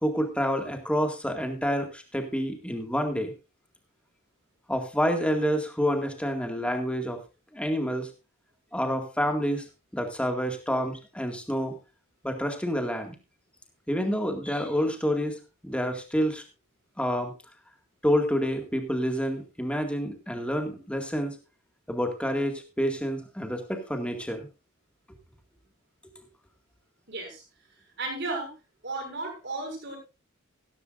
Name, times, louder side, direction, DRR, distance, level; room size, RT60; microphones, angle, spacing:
voice 1, 0.0-3.3 4.7-7.2 7.5-8.1 8.7-9.6 9.9-11.8 12.2-13.1 13.9-16.4 17.0-17.3 18.0-21.4 21.9-24.5, equal, 5° left, 5 dB, 2.0 m, -28 dB
voice 2, 27.1-27.4 28.0-28.5 28.8-30.0, right 2 dB, 55° right, 2 dB, 6.7 m, -34 dB
15.0 x 14.0 x 2.6 m, 0.28 s
head